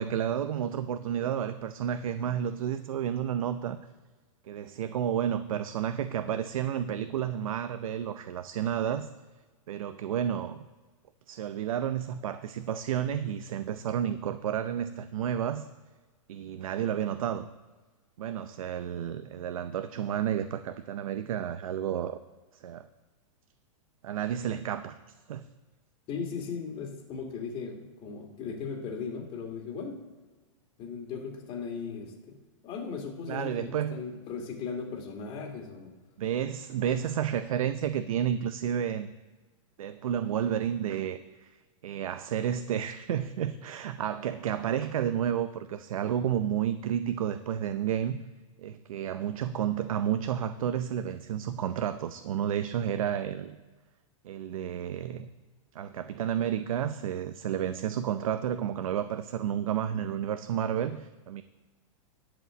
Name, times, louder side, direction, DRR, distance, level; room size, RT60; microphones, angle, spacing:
voice 1, 0.0-3.8 4.5-9.1 9.7-10.7 11.3-15.7 16.3-17.5 18.2-22.2 22.5-22.9 24.0-25.0 25.3-25.5 33.3-34.0 36.2-39.1 39.8-41.5 41.8-48.2 48.6-53.5 54.2-55.3 55.7-61.4, right 9 dB, 80° right, 11 dB, 0.6 m, -31 dB
voice 2, 26.1-30.0 30.8-32.4 32.6-35.9, left 5 dB, 30° left, 2 dB, 2.3 m, -37 dB
11.0 x 5.0 x 7.9 m, 1.3 s
hypercardioid pair, 145°, 18 cm